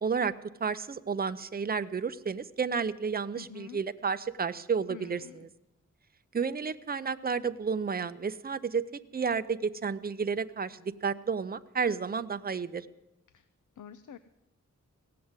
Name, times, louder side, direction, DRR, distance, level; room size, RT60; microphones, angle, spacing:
voice 1, 0.0-0.3 0.6-5.5 6.3-8.9 9.1-12.9, right 5 dB, 30° right, 11 dB, 0.6 m, -31 dB
voice 2, 3.3-3.8 4.9-5.5 13.3-13.5 13.8-14.2, left 9 dB, 80° left, 13 dB, 0.6 m, -47 dB
17.5 x 7.7 x 9.6 m, 0.91 s
wide cardioid pair, 115°, 30 cm